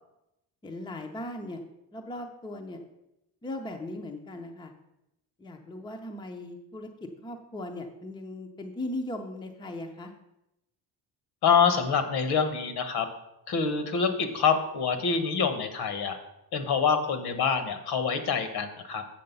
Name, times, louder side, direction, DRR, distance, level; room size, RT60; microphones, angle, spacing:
voice 1, 0.6-1.6 1.9-2.8 3.4-4.7 5.4-10.1, left 1 dB, 10° left, 4 dB, 0.6 m, -38 dB
voice 2, 11.4-13.1 13.5-16.2 16.5-19.0, left 6 dB, 65° left, 9 dB, 1.2 m, -26 dB
7.7 x 6.5 x 5.4 m, 0.88 s
cardioid pair, 165°, 41 cm